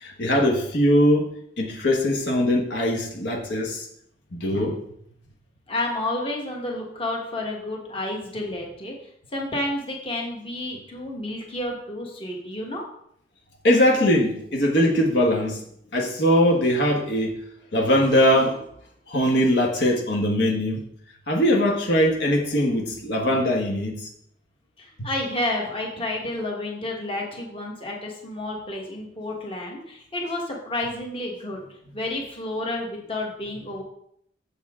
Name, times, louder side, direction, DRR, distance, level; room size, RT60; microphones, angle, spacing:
voice 1, 0.0-3.9 4.3-4.8 13.6-15.6 15.9-17.4 17.7-18.6 19.1-20.8 21.3-23.9 25.0-25.1, equal, 70° left, 0 dB, 1.3 m, -21 dB
voice 2, 5.7-8.9 9.3-12.8 24.8-31.6 31.9-33.8, left 1 dB, 30° left, 0 dB, 1.4 m, -30 dB
7.0 x 7.0 x 3.6 m, 0.70 s
head